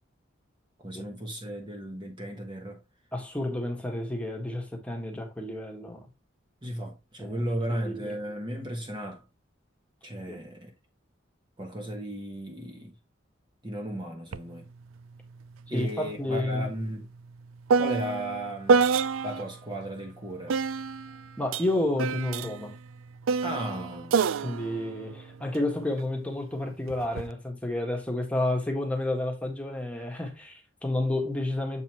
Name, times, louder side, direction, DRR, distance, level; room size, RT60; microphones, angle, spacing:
voice 1, 0.8-2.8 6.6-9.2 10.0-10.7 11.6-12.9 13.6-14.7 15.7-17.0 17.8-18.8 19.2-20.6 23.4-24.2, right 1 dB, 25° right, 1.2 m, -35 dB
voice 2, 3.1-6.1 7.2-7.4 7.8-8.2 10.3-10.4 15.7-16.7 21.4-22.8 24.4-31.8, left 1 dB, 5° left, 1.5 m, -30 dB
sound 1, 14.3-14.5 14.8-19.6 20.5-26.0 26.9-27.3, right 5 dB, 90° right, 0.4 m, -28 dB
7.4 x 5.4 x 2.9 m
head